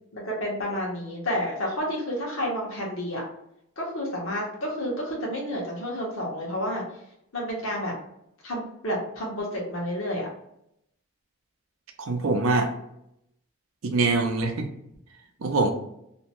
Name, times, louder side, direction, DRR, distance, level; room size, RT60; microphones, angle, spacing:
voice 1, 0.1-3.2 3.8-6.8 7.3-7.9 8.4-10.3, equal, 70° left, -3 dB, 1.0 m, -30 dB
voice 2, 12.0-12.7 13.8-14.7 15.4-15.7, right 3 dB, 75° right, 4 dB, 0.5 m, -24 dB
2.7 x 2.2 x 2.9 m, 0.78 s
head